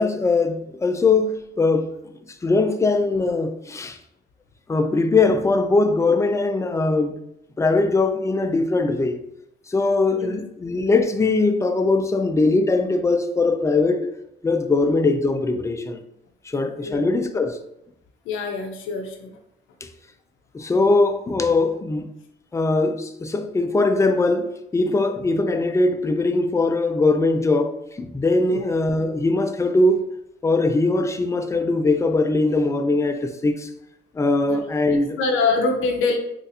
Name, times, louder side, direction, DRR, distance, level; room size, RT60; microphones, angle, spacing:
voice 1, 0.0-1.9 2.4-4.0 4.7-7.1 7.6-9.2 9.7-14.1 14.4-16.0 16.5-17.6 19.8-19.9 20.5-22.1 22.5-30.0 30.4-33.7 34.2-35.2, left 3 dB, 15° left, 0.3 m, -21 dB
voice 2, 18.3-19.4 28.5-28.6 34.5-34.6 35.2-36.2, left 4 dB, 85° left, 0.5 m, -24 dB
3.9 x 2.4 x 2.7 m
cardioid pair, 90°, 20 cm